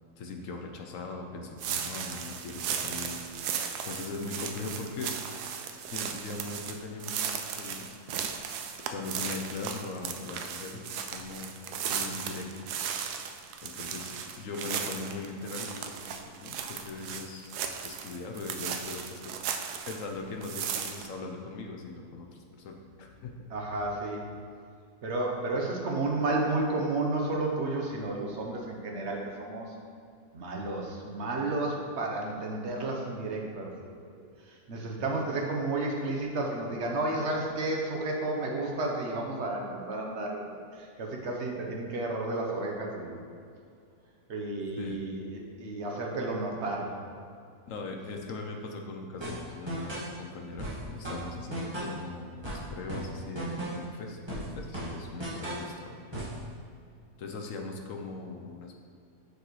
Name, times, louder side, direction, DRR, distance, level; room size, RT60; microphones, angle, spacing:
voice 1, 0.2-5.1 5.9-7.9 8.8-11.5 11.9-12.7 13.6-17.5 17.8-19.5 19.8-23.3 44.8-45.0 47.7-56.0 57.2-58.8, left 3 dB, 65° left, 3 dB, 1.0 m, -40 dB
sound 1, 1.6-20.1 20.4-21.1, right 7 dB, 80° right, 1.1 m, -36 dB
voice 2, 23.5-24.3 25.0-29.7 30.3-43.2 44.3-47.0, right 2 dB, 50° right, 0 dB, 1.1 m, -32 dB
sound 2, 49.2-50.1 50.6-52.0 52.4-53.9 54.3-55.7 56.1-56.4, right 1 dB, 15° right, 1.6 m, -36 dB
7.1 x 6.8 x 3.1 m, 2.3 s
omnidirectional pair, 1.7 m